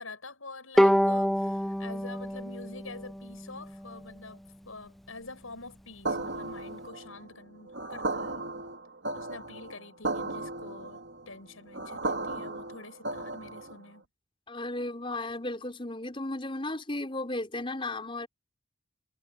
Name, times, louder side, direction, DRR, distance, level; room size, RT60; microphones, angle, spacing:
voice 1, 0.0-4.4 4.6-8.5 9.1-14.0, left 3 dB, 85° left, 7.8 m, -46 dB
Bowed string instrument, 0.8-4.1, equal, ahead, 0.5 m, -27 dB
sound 1, 6.1-13.9, right 2 dB, 60° right, 2.7 m, -35 dB
voice 2, 14.5-18.3, left 2 dB, 25° left, 5.5 m, -34 dB
head